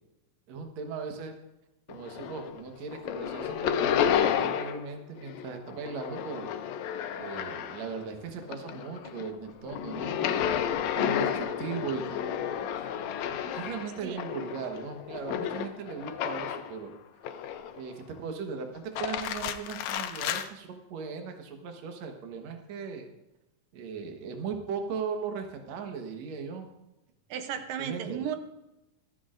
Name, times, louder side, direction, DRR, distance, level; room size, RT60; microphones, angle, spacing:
voice 1, 0.5-1.3 1.9-6.5 7.2-12.5 13.5-16.9 17.8-23.1 23.7-26.7 27.8-28.2, right 5 dB, 60° right, 4 dB, 2.3 m, -38 dB
sound 1, 1.9-2.6 2.9-4.9 5.2-8.0 8.4-16.8 17.2-17.9 18.7-20.5, left 9 dB, 75° left, 1.6 m, -31 dB
voice 2, 27.3-28.4, right 9 dB, 85° right, 7 dB, 2.5 m, -34 dB
25.0 x 8.6 x 2.5 m, 0.96 s
omnidirectional pair, 3.8 m